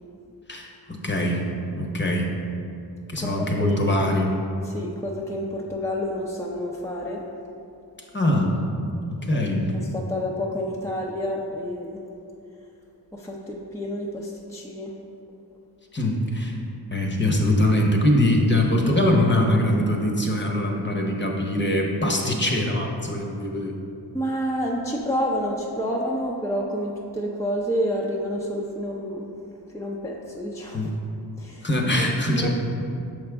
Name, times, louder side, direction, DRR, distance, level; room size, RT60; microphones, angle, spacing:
voice 1, 0.5-1.4 1.8-2.3 3.1-4.3 8.1-8.6 9.1-9.7 15.9-16.6 16.9-23.7 30.7-30.9 31.6-32.5, left 1 dB, 25° left, 0 dB, 1.0 m, -22 dB
voice 2, 3.2-4.0 4.6-7.2 9.3-9.5 9.7-12.0 13.1-14.9 24.1-29.3 29.7-30.9 31.4-31.7 31.9-32.1 32.3-32.5, equal, 5° left, -3 dB, 0.6 m, -29 dB
6.3 x 4.9 x 3.5 m, 2.6 s
cardioid pair, 50°, 43 cm